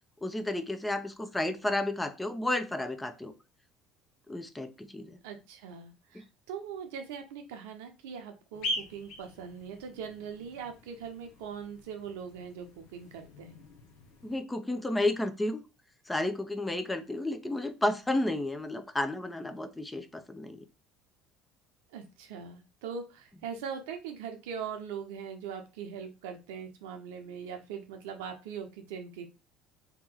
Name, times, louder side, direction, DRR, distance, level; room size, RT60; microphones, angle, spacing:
voice 1, 0.2-3.3 4.3-5.2 6.1-6.2 14.2-15.6 16.1-20.6, left 1 dB, 15° left, 8 dB, 0.6 m, -32 dB
voice 2, 5.2-13.6 21.9-29.3, right 7 dB, 80° right, 5 dB, 0.7 m, -41 dB
sound 1, 8.5-14.4, left 1 dB, 70° left, 0.9 m, -42 dB
3.0 x 2.9 x 3.8 m, 0.29 s
hypercardioid pair, 70°, 0 cm